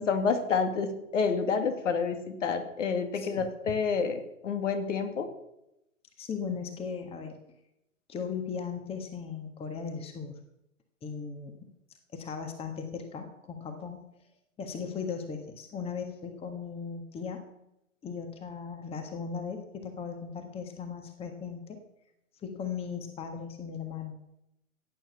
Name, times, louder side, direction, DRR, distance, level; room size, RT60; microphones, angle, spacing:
voice 1, 0.0-5.3, left 5 dB, 60° left, 7 dB, 2.5 m, -29 dB
voice 2, 6.2-7.4 8.1-10.4 11.0-11.7 12.1-14.1 14.6-17.4 18.0-21.8 22.4-24.1, left 6 dB, 15° left, 6 dB, 1.6 m, -37 dB
15.0 x 9.2 x 7.0 m, 0.85 s
figure-of-eight pair, 120°, 42 cm